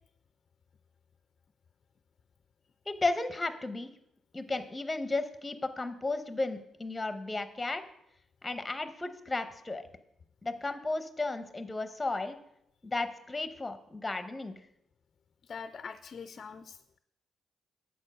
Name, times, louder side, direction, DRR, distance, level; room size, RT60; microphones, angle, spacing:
voice 1, 2.9-3.9 4.3-7.8 8.4-9.9 10.4-12.4 12.8-14.5, left 2 dB, 15° left, 9 dB, 0.8 m, -34 dB
voice 2, 15.4-17.0, left 5 dB, 45° left, 10 dB, 0.4 m, -44 dB
7.9 x 4.4 x 6.4 m, 0.77 s
cardioid pair, 90°, 0 cm